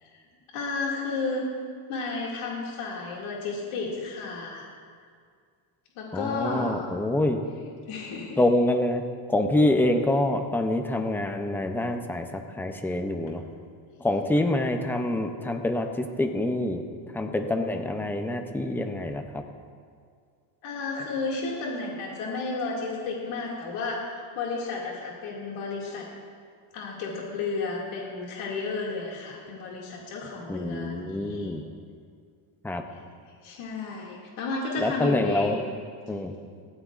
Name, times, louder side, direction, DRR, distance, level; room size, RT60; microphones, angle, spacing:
voice 1, 0.5-1.5 1.9-4.7 6.0-6.9 7.9-8.4 20.6-26.1 26.7-31.6 32.9-33.0 33.4-35.6, left 3 dB, 70° left, -3 dB, 2.2 m, -32 dB
voice 2, 6.1-7.4 8.4-9.0 9.3-13.4 14.0-16.8 17.1-19.4 30.5-31.6 32.6-32.8 34.8-35.6 36.1-36.3, left 1 dB, 5° left, 5 dB, 0.4 m, -26 dB
20.0 x 15.5 x 2.4 m, 2.1 s
cardioid pair, 160°, 50 cm